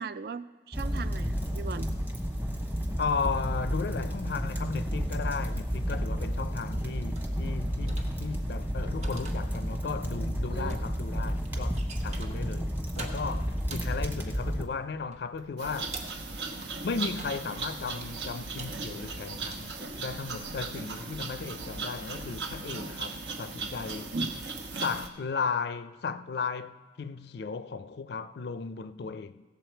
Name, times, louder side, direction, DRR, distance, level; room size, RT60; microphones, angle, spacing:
voice 1, 0.0-1.9 10.5-10.9, right 5 dB, 55° right, 0.4 m, -39 dB
sound 1, 0.7-14.6, equal, 10° right, 1.0 m, -31 dB
voice 2, 3.0-15.9 16.8-24.2 24.8-29.4, left 5 dB, 60° left, 0.4 m, -35 dB
sound 2, 5.6-20.7, right 2 dB, 40° right, 1.1 m, -47 dB
sound 3, 15.6-25.1, right 4 dB, 75° right, 1.0 m, -37 dB
16.5 x 7.2 x 4.5 m
head